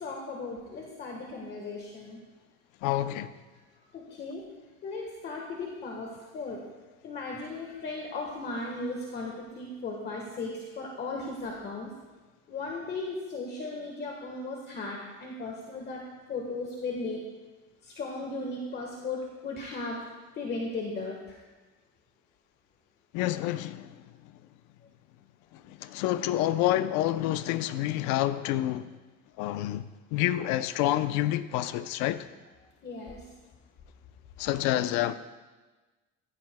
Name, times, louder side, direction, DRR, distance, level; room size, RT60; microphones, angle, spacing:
voice 1, 0.0-2.2 3.9-4.5 4.8-6.6 7.0-11.9 12.5-16.0 16.3-17.3 17.8-20.0 20.3-21.4 32.8-33.3, left 3 dB, 35° left, 1.4 m, -36 dB
voice 2, 2.8-3.3 23.1-23.9 25.7-28.9 29.4-29.8 30.1-32.3 34.4-35.1, left 13 dB, 70° left, 0.7 m, -28 dB
15.5 x 15.0 x 2.2 m
cardioid pair, 150°, 31 cm